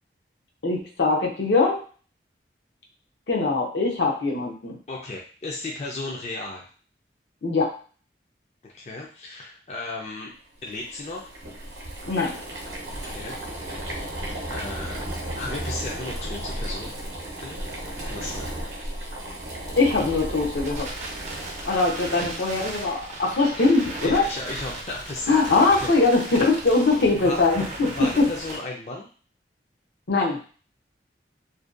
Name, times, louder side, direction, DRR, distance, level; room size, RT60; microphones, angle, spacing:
voice 1, 0.6-1.8 3.3-4.8 7.4-7.7 12.1-12.4 19.8-20.9 21.6-24.3 25.3-28.3 30.1-30.4, left 3 dB, 80° left, -1 dB, 0.6 m, -22 dB
voice 2, 4.9-6.6 8.6-10.3 10.6-11.3 13.1-13.4 14.5-15.0 15.4-16.9 17.4-17.6 18.0-18.5 24.0-25.9 26.9-27.4 27.8-29.1, left 2 dB, 40° left, -1 dB, 0.3 m, -35 dB
Boiling, 10.6-21.9, right 1 dB, 85° right, 0.6 m, -34 dB
Crackle, 19.3-28.6, right 2 dB, 40° right, 0.5 m, -37 dB
2.6 x 2.2 x 2.4 m, 0.41 s
head